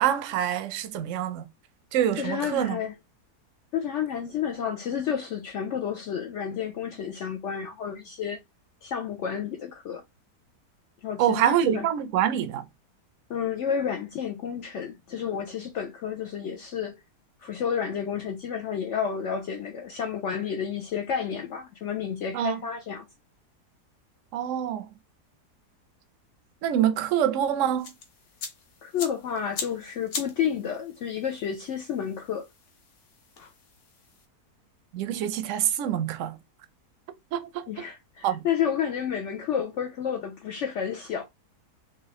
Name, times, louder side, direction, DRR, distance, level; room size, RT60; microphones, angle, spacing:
voice 1, 0.0-1.5 1.9-2.8 11.2-12.6 22.3-22.6 24.3-24.9 26.6-27.9 34.9-36.4 37.3-37.7 38.2-38.4, right 10 dB, 65° right, 0.8 m, -25 dB
voice 2, 2.2-2.9 3.7-8.4 8.8-10.0 11.0-11.9 13.3-17.0 17.4-23.0 28.8-32.5 37.7-41.2, left 8 dB, 75° left, 0.7 m, -30 dB
sound 1, 27.8-34.2, left 5 dB, 55° left, 1.1 m, -41 dB
3.6 x 2.9 x 3.0 m
omnidirectional pair, 1.7 m